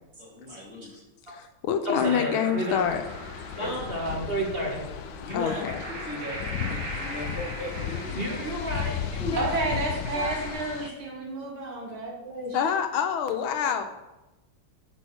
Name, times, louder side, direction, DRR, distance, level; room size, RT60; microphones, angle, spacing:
voice 1, 0.2-1.0 3.5-3.8 5.2-5.6 6.0-8.4 9.2-9.4, left 2 dB, 30° left, -4 dB, 2.8 m, -36 dB
voice 2, 1.3-3.0 5.3-5.8 12.5-13.8, left 7 dB, 85° left, 7 dB, 1.7 m, -26 dB
voice 3, 1.9-2.9 3.6-4.9 8.2-9.0 9.3-9.7 10.2-10.5 10.8-10.9 12.5-12.7 13.1-13.2, right 1 dB, 30° right, -1 dB, 1.8 m, -32 dB
sound 1, 2.0-10.5, right 1 dB, 60° right, 2.4 m, -40 dB
sound 2, 2.7-10.9, left 9 dB, 70° left, 0.9 m, -35 dB
voice 4, 9.4-12.6, right 2 dB, 85° right, -1 dB, 2.9 m, -31 dB
8.8 x 5.4 x 6.2 m, 0.99 s
omnidirectional pair, 2.3 m